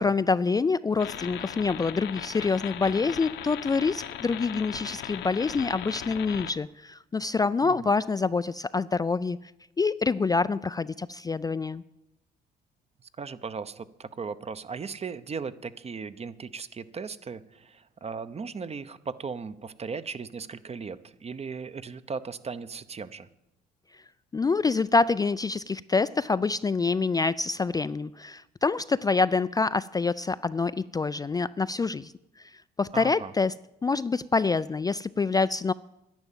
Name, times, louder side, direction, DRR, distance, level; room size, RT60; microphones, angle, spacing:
voice 1, 0.0-9.4 9.8-11.8 24.3-32.1 32.4-32.5 32.8-33.5 33.8-35.7, left 4 dB, 20° left, 14 dB, 0.4 m, -26 dB
sound 1, 1.0-6.5, left 10 dB, 80° left, 1.0 m, -38 dB
voice 2, 13.2-23.3 32.9-33.3, right 5 dB, 35° right, 14 dB, 0.8 m, -37 dB
10.5 x 10.5 x 7.3 m, 0.90 s
supercardioid pair, 70°, 19 cm